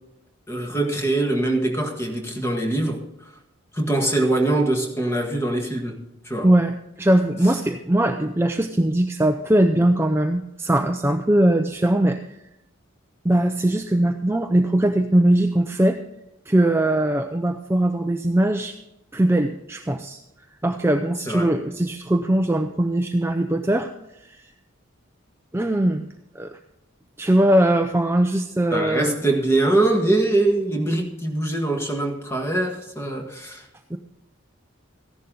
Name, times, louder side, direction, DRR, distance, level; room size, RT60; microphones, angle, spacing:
voice 1, 0.5-3.0 3.7-6.5 21.3-21.5 28.7-33.6, right 2 dB, 15° left, 3 dB, 1.7 m, -23 dB
voice 2, 6.4-12.2 13.2-16.0 16.5-18.8 19.1-20.2 20.6-23.9 24.2-24.5 25.5-26.1 26.3-26.6 27.2-29.2 33.9-34.0, right 1 dB, 10° right, 5 dB, 0.5 m, -20 dB
14.5 x 11.0 x 3.9 m, 0.88 s
head